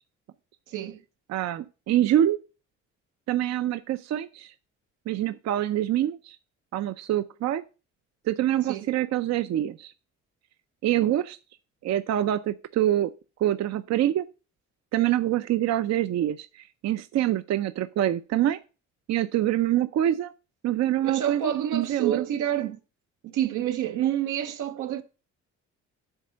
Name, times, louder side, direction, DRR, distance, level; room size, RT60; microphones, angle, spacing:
voice 1, 0.7-1.0 8.7-8.9 11.0-11.1 21.0-22.8 23.2-25.0, right 10 dB, 90° right, 0.9 m, -28 dB
voice 2, 1.3-2.4 3.3-4.5 5.1-6.4 6.7-7.6 8.3-9.9 10.8-11.4 11.8-13.1 13.4-14.2 14.9-18.6 19.1-20.3 20.6-22.2, right 12 dB, 60° right, 0.5 m, -25 dB
8.2 x 3.3 x 6.2 m
cardioid pair, 90°, 30 cm